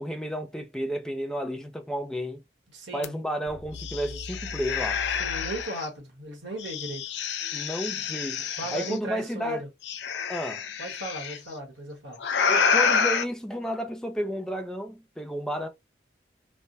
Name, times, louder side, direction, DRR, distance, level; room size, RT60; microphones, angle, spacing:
voice 1, 0.0-2.4 2.9-5.0 7.5-9.6 10.3-10.7 12.5-15.7, equal, 5° left, 0.4 m, -32 dB
voice 2, 2.7-3.2 5.2-7.0 8.6-9.7 10.8-12.2, right 1 dB, 75° right, 1.3 m, -36 dB
sound 1, 3.0-3.1 3.5-5.9 6.6-9.0 9.8-11.4 12.2-13.2, left 6 dB, 70° left, 0.5 m, -28 dB
3.3 x 2.1 x 2.6 m
head